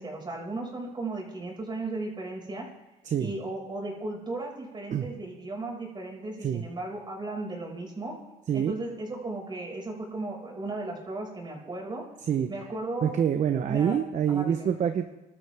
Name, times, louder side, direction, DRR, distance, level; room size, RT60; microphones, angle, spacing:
voice 1, 0.0-2.7 3.2-8.2 8.5-12.0 12.5-13.1 13.7-13.9 14.3-14.7, right 2 dB, 25° right, 0 dB, 5.6 m, -35 dB
voice 2, 13.0-15.1, right 8 dB, 45° right, 8 dB, 0.9 m, -26 dB
26.5 x 13.0 x 3.5 m, 1.0 s
cardioid pair, 110°, 17 cm